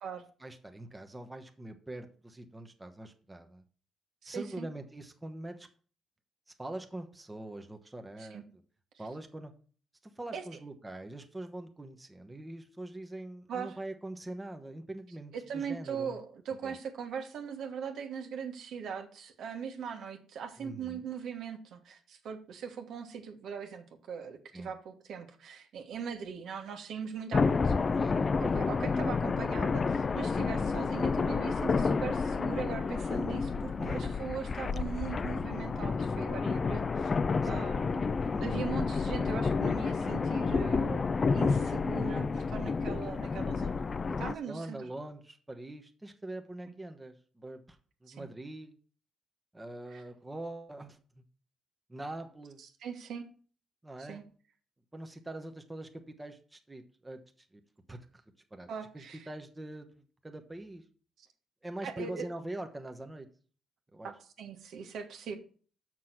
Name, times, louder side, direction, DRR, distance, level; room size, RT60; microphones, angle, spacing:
voice 1, 0.4-3.6 4.2-5.7 6.6-8.4 9.0-9.5 10.2-16.1 16.6-16.8 20.6-21.0 24.5-24.7 27.9-28.3 33.8-34.2 37.4-37.7 38.3-38.5 44.2-48.8 49.5-51.2 51.9-52.6 53.8-54.2 54.9-57.6 57.9-58.2 58.5-58.7 58.9-60.8 61.6-63.3 63.9-64.1, right 1 dB, 15° right, 5 dB, 1.0 m, -43 dB
voice 2, 4.2-4.7 8.2-8.4 10.3-10.4 13.5-13.8 15.3-27.7 28.4-37.1 37.4-43.9 44.2-44.9 46.7-46.8 48.1-48.3 49.9-50.0 52.6-53.3 54.0-54.2 58.7-59.3 61.2-61.3 61.8-62.3 64.4-65.4, right 7 dB, 75° right, 4 dB, 1.5 m, -40 dB
sound 1, 27.3-44.3, left 4 dB, 35° left, 0.4 m, -30 dB
6.4 x 6.1 x 5.8 m, 0.42 s
cardioid pair, 90°, 0 cm